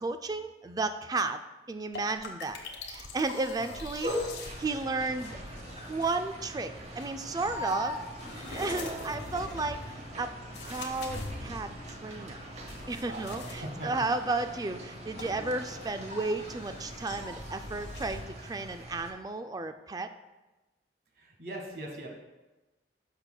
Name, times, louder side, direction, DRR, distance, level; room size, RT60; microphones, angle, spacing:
voice 1, 0.0-1.4 1.7-2.6 2.9-4.1 4.6-5.4 5.9-8.0 8.3-9.8 10.2-10.3 10.6-12.4 12.9-20.1, right 3 dB, 20° right, 9 dB, 0.3 m, -33 dB
sound 1, 1.9-6.4 7.0-13.7 14.7-18.2, left 2 dB, 80° left, 1.2 m, -44 dB
sound 2, 4.0-19.1, equal, 40° right, 0.8 m, -41 dB
sound 3, 4.8-17.3, equal, 35° left, 1.4 m, -51 dB
voice 2, 13.0-14.1 21.2-22.1, right 1 dB, 60° right, 0 dB, 1.5 m, -41 dB
11.0 x 6.5 x 2.2 m, 1.1 s
head